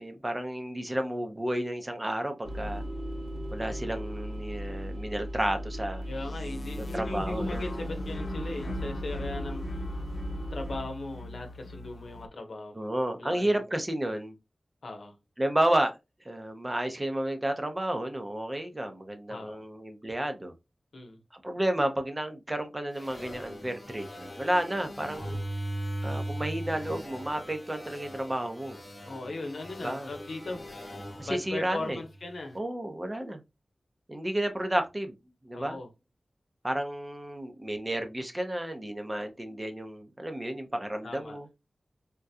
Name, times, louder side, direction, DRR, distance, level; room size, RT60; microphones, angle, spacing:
voice 1, 0.0-2.8 3.5-6.0 6.9-7.6 12.7-14.3 15.4-15.9 16.2-20.5 21.4-25.4 26.0-28.8 29.8-30.1 31.2-32.0 32.5-33.4 34.1-35.2 35.4-35.8 36.6-41.5, right 1 dB, 25° right, 0.7 m, -31 dB
sound 1, 2.4-10.8, equal, 65° right, 2.1 m, -37 dB
sound 2, 6.0-12.3, left 2 dB, 65° left, 0.4 m, -40 dB
voice 2, 6.1-9.8 10.5-12.9 13.2-13.6 14.8-15.2 19.3-19.6 20.9-21.2 29.0-30.7 31.2-32.6 35.5-35.9 41.0-41.4, left 2 dB, 85° left, 0.8 m, -38 dB
sound 3, 22.9-32.4, right 1 dB, 40° left, 0.9 m, -39 dB
3.6 x 2.2 x 2.7 m
wide cardioid pair, 55°, 0 cm